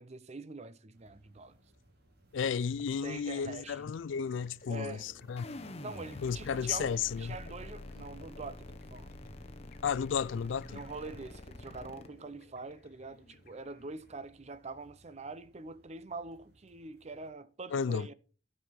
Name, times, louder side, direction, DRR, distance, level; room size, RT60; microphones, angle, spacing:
voice 1, 0.0-1.6 3.0-3.9 4.7-5.1 5.8-9.2 10.7-18.1, right 3 dB, 35° right, 0.6 m, -44 dB
sound 1, 0.9-17.3, right 1 dB, 55° right, 2.3 m, -59 dB
voice 2, 2.3-5.5 6.2-7.3 9.8-10.8 17.7-18.1, left 6 dB, 75° left, 0.4 m, -33 dB
sound 2, 3.7-14.2, left 3 dB, 50° left, 1.1 m, -60 dB
sound 3, 5.4-12.1, left 2 dB, 35° left, 0.8 m, -47 dB
13.0 x 5.4 x 5.8 m
head